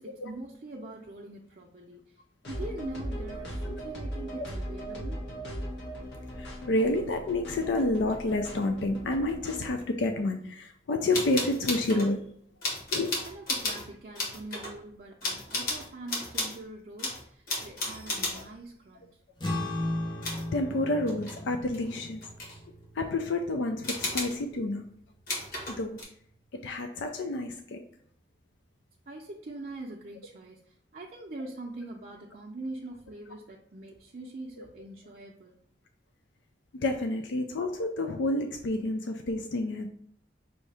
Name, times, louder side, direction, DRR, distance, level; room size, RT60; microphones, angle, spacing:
voice 1, 0.0-2.1 2.4-5.3 13.2-19.1 29.1-35.6, right 2 dB, 50° right, -1 dB, 0.5 m, -43 dB
sound 1, 2.4-9.7, equal, 70° left, 1.2 m, -38 dB
voice 2, 6.4-12.2 12.9-13.2 18.3-18.4 20.5-22.2 23.0-24.9 25.7-26.0 26.5-27.8 36.7-39.9, left 2 dB, 90° left, 5 dB, 0.4 m, -29 dB
sound 2, 11.1-12.1 12.6-13.9 14.2-14.7 15.2-16.6 17.0-18.5 20.2-20.5 21.1-21.4 21.7-22.6 23.8-24.4 25.3-26.0, left 2 dB, 50° left, 1.5 m, -33 dB
sound 3, 19.4-26.0, left 1 dB, 25° left, 0.7 m, -37 dB
5.6 x 2.7 x 3.3 m, 0.65 s
head